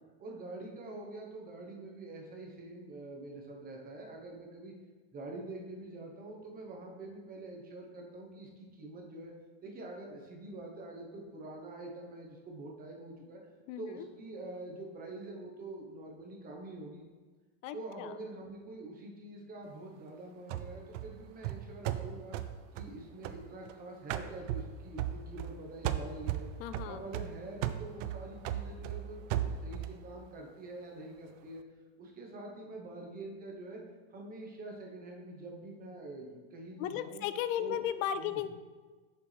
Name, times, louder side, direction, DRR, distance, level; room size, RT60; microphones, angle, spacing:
voice 1, 0.2-4.7 5.1-9.3 9.6-13.4 13.8-17.0 17.7-22.3 22.7-26.5 26.8-31.6 32.0-33.8 34.1-37.2 37.6-37.9 38.2-38.4, right 2 dB, 25° right, 0 dB, 1.0 m, -45 dB
voice 2, 13.7-14.1 17.6-18.1 26.6-27.0 36.8-38.5, left 10 dB, 80° left, 12 dB, 0.5 m, -35 dB
sound 1, 20.5-23.7 24.1-25.6 25.8-30.0, right 11 dB, 75° right, 0.5 m, -37 dB
6.9 x 6.5 x 3.3 m, 1.4 s
supercardioid pair, 150°, 38 cm